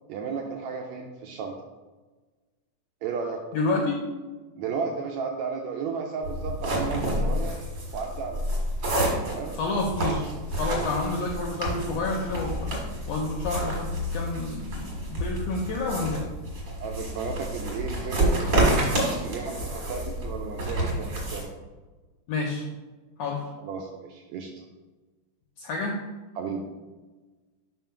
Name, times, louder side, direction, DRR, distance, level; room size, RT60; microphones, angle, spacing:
voice 1, 0.1-1.5 3.0-3.4 4.6-7.6 7.9-8.4 9.2-9.6 16.8-18.8 19.2-21.5 23.6-24.5 26.3-26.7, right 5 dB, 80° right, 2 dB, 1.6 m, -33 dB
voice 2, 3.5-4.0 9.5-10.3 10.5-12.7 13.1-16.2 22.3-22.7 23.2-23.4 25.6-26.0, left 3 dB, 80° left, 0 dB, 1.5 m, -29 dB
sound 1, 6.2-21.4, right 1 dB, 40° right, 1.9 m, -29 dB
4.5 x 3.9 x 5.6 m, 1.3 s
omnidirectional pair, 3.6 m